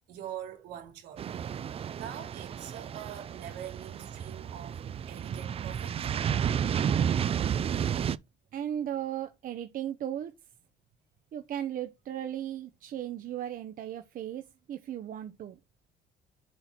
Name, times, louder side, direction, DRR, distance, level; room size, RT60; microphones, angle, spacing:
voice 1, 0.1-1.3 1.9-6.3, right 10 dB, 75° right, 3.3 m, -44 dB
sound 1, 1.2-8.2, right 8 dB, 35° right, 0.4 m, -31 dB
voice 2, 8.5-10.3 11.3-14.4 14.7-15.6, right 10 dB, 55° right, 0.8 m, -36 dB
7.4 x 4.4 x 4.4 m
cardioid pair, 110°, 17 cm